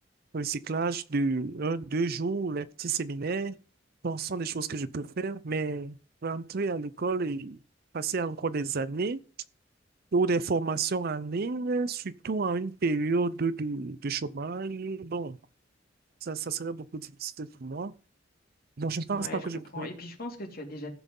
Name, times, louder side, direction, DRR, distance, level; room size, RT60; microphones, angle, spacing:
voice 1, 0.3-3.6 4.0-6.0 6.2-7.6 7.9-9.2 10.1-15.4 16.2-17.9 18.8-19.9, right 4 dB, 55° right, 0.6 m, -30 dB
voice 2, 19.1-20.9, left 2 dB, 55° left, 2.9 m, -40 dB
14.5 x 6.2 x 5.3 m
head